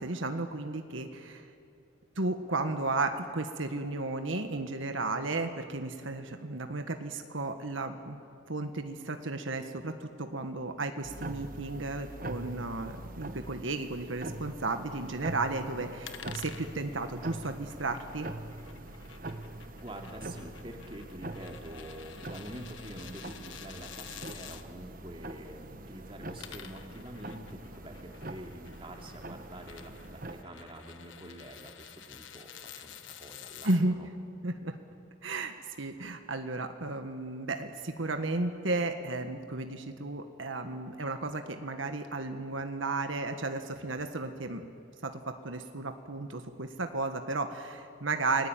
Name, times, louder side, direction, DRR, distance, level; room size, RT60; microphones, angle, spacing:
voice 1, 0.0-1.4 2.2-8.2 8.5-18.3 33.6-33.9 34.4-34.8 35.2-44.6 45.0-45.1 45.4-48.5, right 2 dB, 80° right, 6 dB, 1.5 m, -34 dB
sound 1, 11.0-30.4, right 2 dB, 45° right, 1.1 m, -43 dB
sound 2, 16.0-24.6 26.2-33.8, left 8 dB, 80° left, 1.4 m, -50 dB
voice 2, 19.7-34.1, right 1 dB, 25° right, 2 dB, 2.7 m, -46 dB
29.5 x 20.5 x 9.1 m, 2.5 s
head